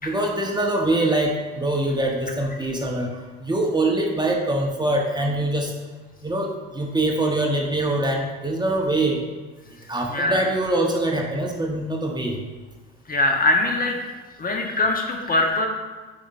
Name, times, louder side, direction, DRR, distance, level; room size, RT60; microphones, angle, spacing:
voice 1, 0.0-5.7 6.2-9.2 9.9-12.4 14.6-14.7, right 1 dB, 15° right, 0 dB, 1.1 m, -24 dB
voice 2, 10.1-10.4 13.1-14.0 14.4-15.7, left 2 dB, 25° left, 1 dB, 1.2 m, -22 dB
9.1 x 5.3 x 2.6 m, 1.3 s
hypercardioid pair, 75°, 32 cm